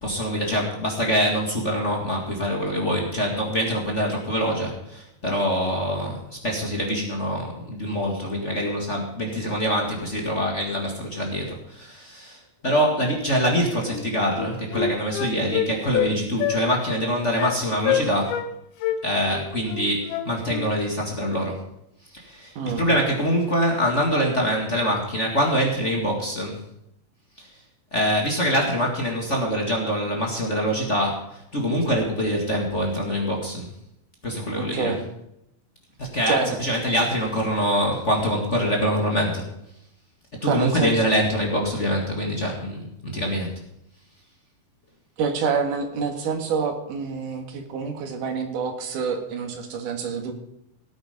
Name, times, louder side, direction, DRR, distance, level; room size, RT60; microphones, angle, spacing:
voice 1, 0.0-18.4 19.0-21.6 22.1-26.6 27.4-27.5 27.9-33.7 34.2-34.9 36.0-39.4 40.4-43.5, equal, 30° left, 0 dB, 1.5 m, -24 dB
Wind instrument woodwind instrument, 13.9-14.0 14.3-16.1 16.4-16.6 16.9-17.0 17.4-17.6 17.8-18.5 18.8-20.7, left 9 dB, 85° left, 3.0 m, -26 dB
voice 2, 34.6-35.0 36.3-36.6 40.5-41.0 45.2-50.3, right 5 dB, 60° right, 5 dB, 3.2 m, -27 dB
18.0 x 9.1 x 5.3 m, 0.80 s
omnidirectional pair, 4.3 m